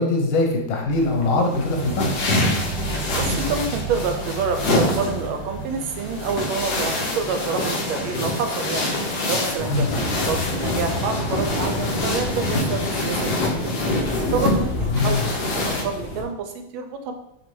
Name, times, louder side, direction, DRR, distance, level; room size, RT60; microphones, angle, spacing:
voice 1, 0.0-2.1 9.7-9.9 14.9-15.2, left 2 dB, 80° left, 1 dB, 1.6 m, -22 dB
sound 1, 0.8-11.9, right 3 dB, 60° right, 0.9 m, -34 dB
sound 2, 0.9-15.8, left 2 dB, 65° left, 1.2 m, -26 dB
voice 2, 3.1-8.9 9.3-13.7 14.3-17.1, right 5 dB, 85° right, 6 dB, 1.4 m, -28 dB
sound 3, 9.5-16.2, left 2 dB, 35° left, 1.2 m, -29 dB
5.2 x 2.8 x 3.1 m, 0.81 s
omnidirectional pair, 2.2 m